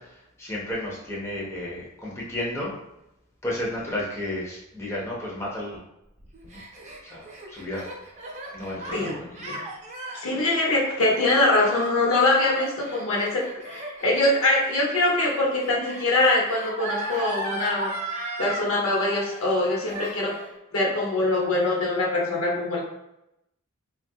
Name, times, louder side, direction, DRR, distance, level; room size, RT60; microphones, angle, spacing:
voice 1, 0.0-2.8 3.4-5.8 6.4-6.6 7.0-7.9 8.5-9.4, left 1 dB, 15° left, -5 dB, 0.5 m, -33 dB
Gasp, 6.2-18.7 19.0-19.6 19.9-20.5, right 2 dB, 35° right, 0.5 m, -36 dB
voice 2, 10.1-17.9 18.4-20.3 20.7-22.8, left 2 dB, 70° left, -2 dB, 0.8 m, -23 dB
3.3 x 2.2 x 2.6 m, 0.86 s
head